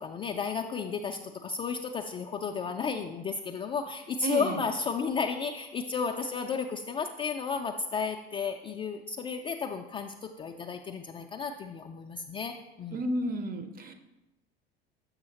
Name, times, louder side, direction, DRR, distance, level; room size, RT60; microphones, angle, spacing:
voice 1, 0.0-12.5 12.8-13.1, left 5 dB, 20° left, 2 dB, 0.3 m, -33 dB
voice 2, 4.2-4.6 12.9-13.9, right 1 dB, 30° right, 8 dB, 0.7 m, -32 dB
7.1 x 6.1 x 2.9 m, 1.0 s
figure-of-eight pair, 75°, 30 cm